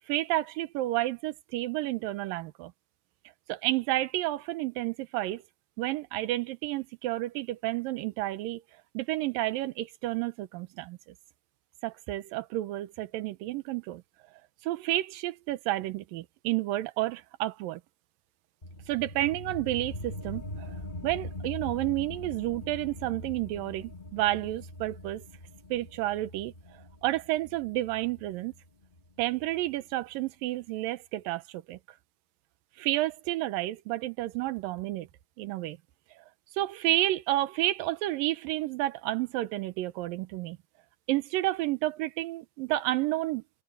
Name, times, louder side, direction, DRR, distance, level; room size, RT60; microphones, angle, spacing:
voice 1, 0.1-2.7 3.5-5.4 5.8-8.6 8.9-11.0 11.8-14.0 14.6-17.8 18.9-20.7 21.0-25.2 25.7-26.5 27.0-28.5 29.2-31.8 32.8-35.1 35.4-35.8 36.2-36.3 36.5-40.6 41.1-43.4, right 16 dB, 85° right, 2.6 m, -30 dB
sound 1, 18.6-29.7, left 1 dB, 25° left, 1.2 m, -42 dB
omnidirectional pair, 3.9 m